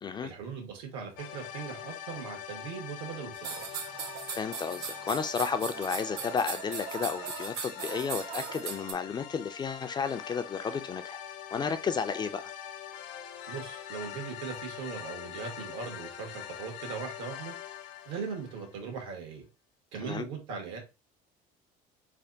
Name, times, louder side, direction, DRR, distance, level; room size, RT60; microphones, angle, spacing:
voice 1, 0.2-3.6 13.5-17.5 18.0-19.5 19.9-20.8, right 6 dB, 85° right, 1.5 m, -39 dB
sound 1, 1.2-19.0, left 10 dB, 75° left, 0.8 m, -43 dB
sound 2, 3.4-8.9, right 7 dB, 60° right, 0.9 m, -39 dB
voice 2, 4.3-11.2 11.5-12.5 20.0-20.2, left 6 dB, 25° left, 0.3 m, -32 dB
3.4 x 2.3 x 3.8 m
cardioid pair, 120°, 19 cm